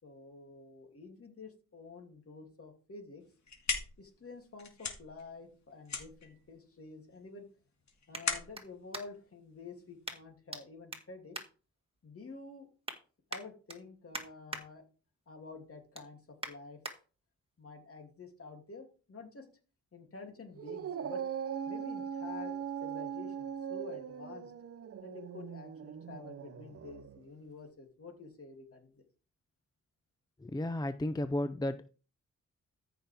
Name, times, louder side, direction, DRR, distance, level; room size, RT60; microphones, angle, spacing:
voice 1, 0.0-3.2 4.0-7.4 8.1-11.4 12.0-12.7 13.3-14.8 15.3-17.0 17.6-19.5 19.9-21.2 21.7-24.5 25.0-29.0, left 3 dB, 50° left, 3 dB, 2.9 m, -49 dB
sound 1, 3.2-10.1, left 5 dB, 65° left, 2.3 m, -40 dB
sound 2, 5.5-9.4 10.0-10.6 10.9-12.2 12.6-13.0 13.3-14.6 15.1-15.3 15.7-17.0 17.5-17.6, right 2 dB, 20° right, 1.9 m, -45 dB
Dog, 20.6-27.2, right 8 dB, 50° right, 0.6 m, -40 dB
voice 2, 30.4-31.9, left 1 dB, 15° left, 11 dB, 0.5 m, -33 dB
14.0 x 5.9 x 3.5 m, 0.36 s
cardioid pair, 80°, 30 cm